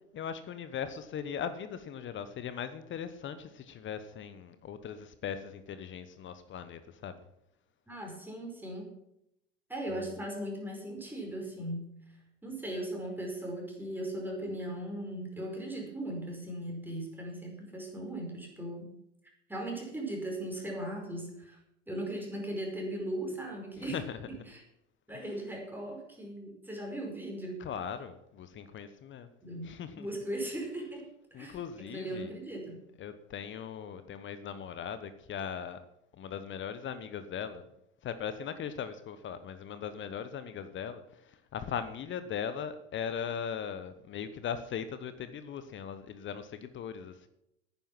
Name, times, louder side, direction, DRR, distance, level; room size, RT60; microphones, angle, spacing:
voice 1, 0.1-7.2 9.9-10.0 23.8-24.2 27.6-29.3 29.6-30.1 31.3-32.3 33.0-35.8 36.1-37.7 38.0-47.3, left 7 dB, 35° left, 12 dB, 1.1 m, -39 dB
voice 2, 7.9-8.9 9.7-12.0 12.4-18.9 19.5-21.6 21.9-24.6 25.1-27.6 29.4-32.8, right 1 dB, 5° right, 0 dB, 5.1 m, -38 dB
10.5 x 9.8 x 7.5 m, 0.79 s
hypercardioid pair, 80°, 36 cm